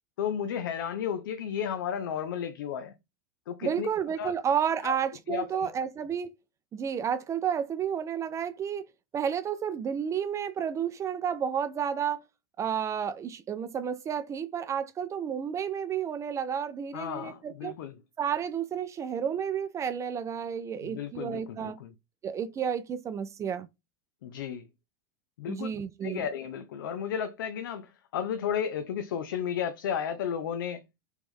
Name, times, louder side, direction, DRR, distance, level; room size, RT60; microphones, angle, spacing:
voice 1, 0.2-2.9 3.5-3.9 4.2-4.3 4.8-4.9 5.3-5.7 16.9-18.0 20.8-21.9 24.2-24.7 25.4-25.7 26.0-30.8, left 8 dB, 75° left, 0.5 m, -33 dB
voice 2, 3.6-6.3 6.7-8.9 9.1-12.2 12.6-17.7 18.2-21.8 22.2-23.7 25.5-26.2, right 8 dB, 25° right, 0.4 m, -31 dB
3.1 x 3.0 x 3.5 m
hypercardioid pair, 100°, 11 cm